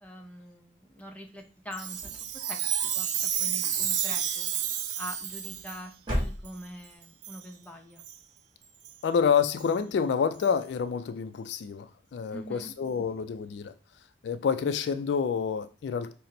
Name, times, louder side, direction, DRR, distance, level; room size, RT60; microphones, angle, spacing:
voice 1, 0.0-2.0 2.3-2.7 2.9-4.5 5.0-8.0 12.3-12.7, equal, 10° left, 0.7 m, -44 dB
Chime, 1.7-5.8 6.5-6.6 7.2-7.4 8.0-8.2 8.8-8.9 9.6-9.7 10.4-10.5, right 9 dB, 80° right, 0.5 m, -31 dB
sound 1, 1.9-3.0 3.5-4.2 5.1-5.6 6.0-6.9, equal, 25° right, 1.6 m, -35 dB
voice 2, 9.0-13.7 14.2-16.1, left 6 dB, 70° left, 0.3 m, -28 dB
5.7 x 2.1 x 3.8 m
head